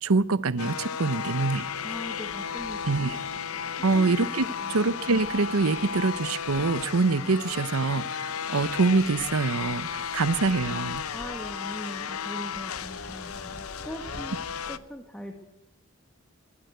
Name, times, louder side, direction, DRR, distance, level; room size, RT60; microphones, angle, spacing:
voice 1, 0.0-1.7 2.9-3.2 3.8-11.0, right 3 dB, 85° right, 16 dB, 0.8 m, -25 dB
sound 1, 0.6-14.8, left 7 dB, 85° left, 0.8 m, -34 dB
sound 2, 1.3-14.8, right 1 dB, 55° right, 5.7 m, -49 dB
voice 2, 1.8-3.2 3.7-4.1 4.5-4.7 11.1-14.4 14.7-15.3, equal, 5° left, 3 dB, 1.6 m, -41 dB
22.0 x 15.5 x 8.0 m, 0.87 s
head